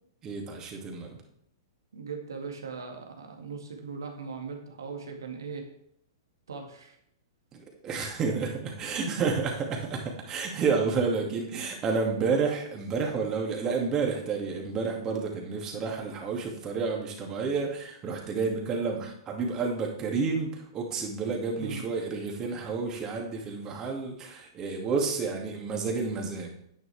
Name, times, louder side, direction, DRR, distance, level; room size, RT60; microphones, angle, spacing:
voice 1, 0.2-1.2 7.5-26.7, right 4 dB, 30° right, 1 dB, 2.4 m, -30 dB
voice 2, 1.9-5.6 6.5-7.0 9.0-9.3 21.5-21.8, right 5 dB, 80° right, 3 dB, 2.0 m, -39 dB
10.0 x 9.1 x 3.4 m, 0.72 s
hypercardioid pair, 110°, 2 cm